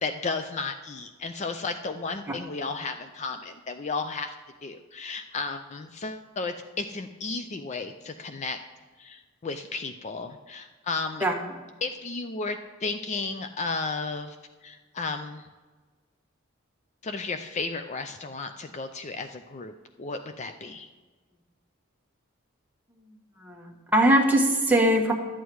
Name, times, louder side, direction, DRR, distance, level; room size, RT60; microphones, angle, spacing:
voice 1, 0.0-4.3 4.6-8.6 9.0-11.3 11.8-14.4 14.6-15.5 17.0-20.9, left 3 dB, 35° left, 8 dB, 0.4 m, -33 dB
voice 2, 23.4-25.1, right 1 dB, 10° right, 1 dB, 1.2 m, -21 dB
12.0 x 8.3 x 4.7 m, 1.3 s
head